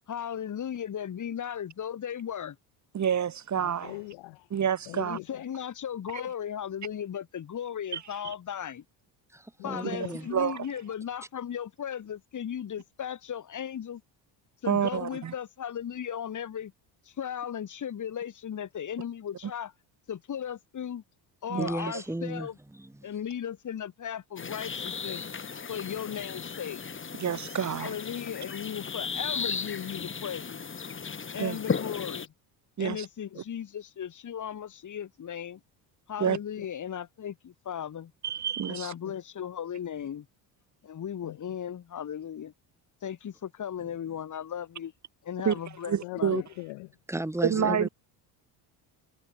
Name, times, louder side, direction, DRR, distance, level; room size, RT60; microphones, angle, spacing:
voice 1, 0.1-2.6 4.9-8.8 9.6-14.0 14.6-16.7 17.1-19.7 20.1-21.0 21.4-22.6 23.0-25.2 25.7-26.8 27.8-30.6 31.3-32.3 32.8-35.6 36.1-38.1 38.7-40.3 40.8-42.5 43.0-44.9 45.2-46.5, left 9 dB, 45° left, 5.5 m, -36 dB
voice 2, 2.9-3.9 4.5-5.2 7.9-8.0 9.9-10.7 14.7-15.3 21.5-21.7 27.2-28.0 31.4-31.6 32.8-33.1 36.2-36.4 38.2-38.9 45.4-45.6 45.8-46.4 47.4-47.9, right 8 dB, 40° right, 3.9 m, -28 dB
voice 3, 3.6-4.5 4.9-5.5 9.6-10.1 36.2-36.7 39.0-39.1 41.2-41.6 46.0-47.0 47.5-47.9, left 24 dB, 85° left, 7.7 m, -41 dB
voice 4, 9.3-10.3 21.5-22.9 47.1-47.9, right 1 dB, 5° right, 3.5 m, -34 dB
sound 1, 24.4-32.3, left 5 dB, 30° left, 5.1 m, -35 dB
cardioid pair, 110°, 43 cm